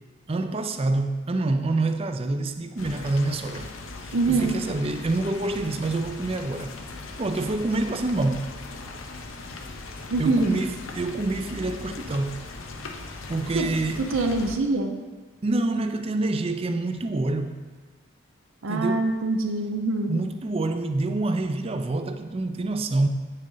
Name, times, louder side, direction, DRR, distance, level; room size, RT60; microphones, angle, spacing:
voice 1, 0.3-3.7 4.0-6.7 7.2-8.5 10.2-12.4 13.3-14.1 15.4-17.6 18.7-19.1 20.1-23.1, right 2 dB, 30° right, 8 dB, 0.4 m, -27 dB
sound 1, 2.8-14.5, left 3 dB, 80° left, 0.8 m, -39 dB
voice 2, 4.1-4.5 10.1-10.5 13.5-13.7 14.0-14.9 18.6-20.2, right 2 dB, 80° right, 5 dB, 0.7 m, -24 dB
8.6 x 6.5 x 3.9 m, 1.4 s
head